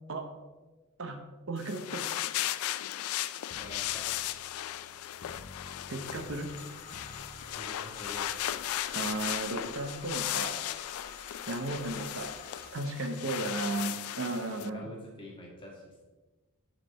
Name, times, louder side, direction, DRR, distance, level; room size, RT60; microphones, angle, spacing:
voice 1, 1.5-2.1 5.9-6.5 8.9-10.6 11.5-12.3 12.7-14.9, right 2 dB, 60° right, 5 dB, 0.9 m, -35 dB
sound 1, 1.6-14.7, left 13 dB, 70° left, 0.3 m, -36 dB
sound 2, 3.5-9.0, left 2 dB, 85° left, 1.0 m, -52 dB
voice 2, 3.6-4.1 4.4-4.6 7.5-8.3 11.6-11.9 13.2-13.6 14.5-16.0, left 1 dB, 25° left, -3 dB, 1.9 m, -46 dB
sound 3, 6.0-12.7, left 4 dB, 45° left, 2.1 m, -51 dB
7.6 x 6.1 x 4.1 m, 1.2 s
head